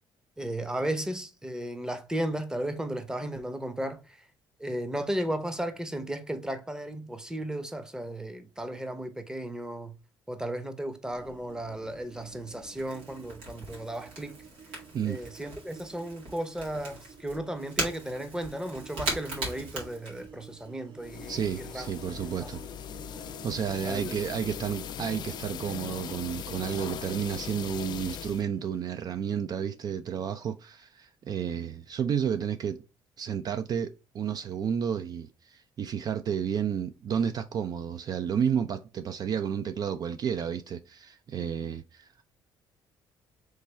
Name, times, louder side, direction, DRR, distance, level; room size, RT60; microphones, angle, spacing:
voice 1, 0.4-4.2 4.6-10.0 10.3-14.3 15.0-21.9 22.4-22.5 23.8-24.2, right 1 dB, 5° right, 0.7 m, -35 dB
sound 1, 11.0-29.0, right 6 dB, 65° right, 1.3 m, -53 dB
Crackle / Crack, 11.1-20.7, right 2 dB, 90° right, 1.9 m, -40 dB
sound 2, 21.0-28.4, left 9 dB, 55° left, 0.4 m, -39 dB
voice 2, 21.3-22.6 23.4-32.8 33.2-42.2, right 8 dB, 45° right, 0.3 m, -31 dB
3.3 x 3.3 x 4.3 m
cardioid pair, 90°, 9 cm